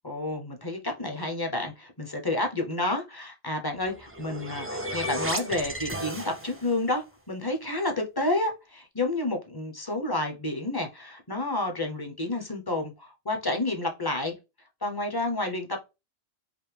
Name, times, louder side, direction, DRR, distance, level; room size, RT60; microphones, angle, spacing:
voice 1, 0.0-14.4 14.8-15.8, left 2 dB, 25° left, 0.7 m, -30 dB
sound 1, 3.8-6.8, right 1 dB, 20° right, 0.4 m, -34 dB
4.9 x 2.1 x 3.4 m
omnidirectional pair, 1.1 m